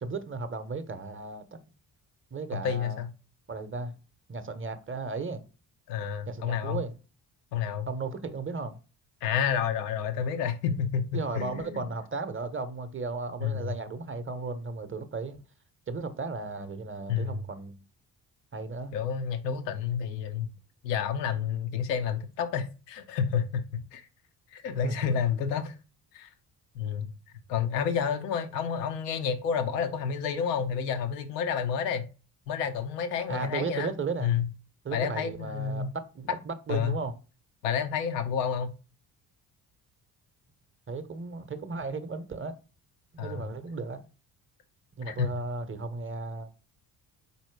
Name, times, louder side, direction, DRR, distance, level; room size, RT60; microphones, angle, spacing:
voice 1, 0.0-1.6 2.3-3.0 3.5-4.0 4.3-5.4 6.3-6.9 7.9-8.8 11.1-15.4 15.9-17.8 18.5-18.9 24.8-25.1 33.3-34.3 34.8-37.1 40.9-42.5 43.2-44.0 45.0-46.5, right 4 dB, 25° right, 0.8 m, -35 dB
voice 2, 2.5-3.1 5.9-6.8 7.5-7.9 9.2-11.9 13.4-13.8 17.1-17.4 18.9-20.5 20.8-24.1 24.5-25.8 26.1-26.3 26.7-27.1 27.5-32.1 32.5-33.9 34.2-34.5 34.9-35.9 36.7-36.9 37.6-38.7 43.2-43.5 45.0-45.3, left 7 dB, 90° left, 0.7 m, -30 dB
4.3 x 2.7 x 4.5 m
hypercardioid pair, 50°, 47 cm